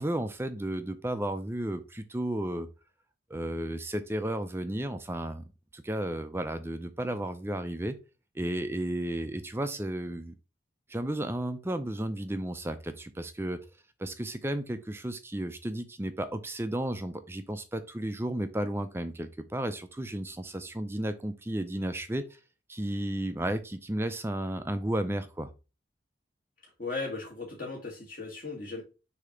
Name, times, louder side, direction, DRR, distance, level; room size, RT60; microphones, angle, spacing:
voice 1, 0.0-2.7 3.3-5.5 5.7-8.0 8.3-10.3 10.9-13.6 14.0-22.4 22.7-25.5, right 1 dB, 10° right, 9 dB, 0.4 m, -33 dB
voice 2, 26.8-28.8, left 3 dB, 45° left, -2 dB, 1.6 m, -37 dB
6.6 x 2.8 x 5.0 m, 0.30 s
head